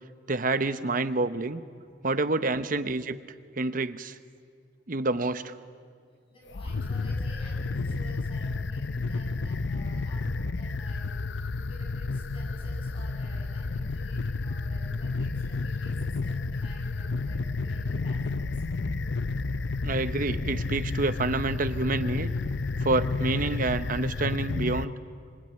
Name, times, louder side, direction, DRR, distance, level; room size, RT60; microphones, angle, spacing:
voice 1, 0.3-1.6 2.0-3.2 3.6-4.2 4.9-5.5 19.8-22.3 22.8-24.9, right 3 dB, 50° right, 11 dB, 0.9 m, -28 dB
voice 2, 6.3-18.8, left 2 dB, 30° left, -1 dB, 7.7 m, -52 dB
sound 1, 6.5-24.9, left 3 dB, 70° left, 0.7 m, -31 dB
25.5 x 22.5 x 9.0 m, 2.1 s
head